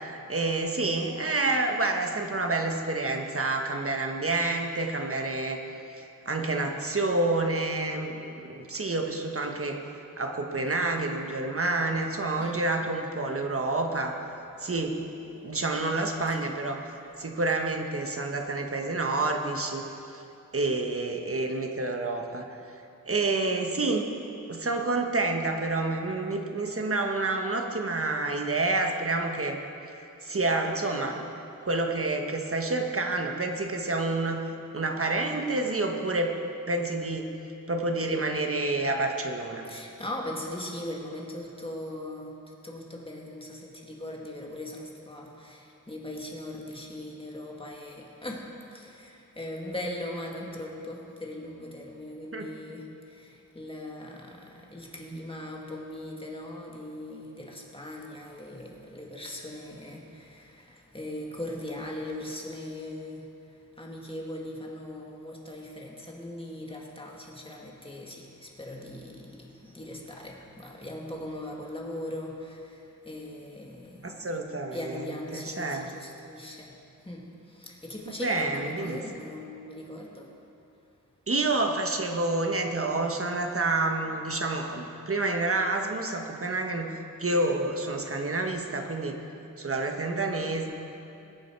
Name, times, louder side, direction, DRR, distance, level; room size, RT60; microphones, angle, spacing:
voice 1, 0.0-5.6 6.0-9.8 10.2-14.1 14.6-15.0 15.4-16.8 17.2-19.9 20.5-22.4 23.1-24.0 24.5-29.6 30.2-31.3 31.6-34.5 34.7-36.4 36.7-37.3 37.7-39.7 52.3-52.5 55.1-55.2 74.0-75.0 75.3-75.9 78.2-79.0 81.3-89.2 89.6-90.7, right 2 dB, 45° right, 3 dB, 1.3 m, -28 dB
voice 2, 39.7-42.4 42.6-48.5 48.7-52.9 53.2-63.3 63.8-72.8 73.1-74.4 74.7-76.7 77.0-77.3 77.5-80.3, left 1 dB, 15° left, -1 dB, 2.0 m, -39 dB
21.5 x 8.6 x 4.6 m, 2.8 s
wide cardioid pair, 100°, 32 cm